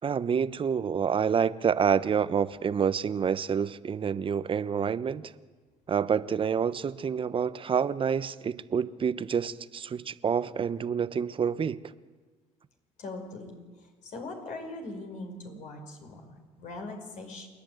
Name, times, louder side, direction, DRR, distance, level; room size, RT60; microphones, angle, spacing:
voice 1, 0.0-5.3 5.9-11.8, right 7 dB, 40° right, 14 dB, 0.9 m, -28 dB
voice 2, 13.0-13.6 14.0-17.5, left 2 dB, 60° left, 3 dB, 5.3 m, -41 dB
28.5 x 10.5 x 9.1 m, 1.4 s
supercardioid pair, 80°, 14 cm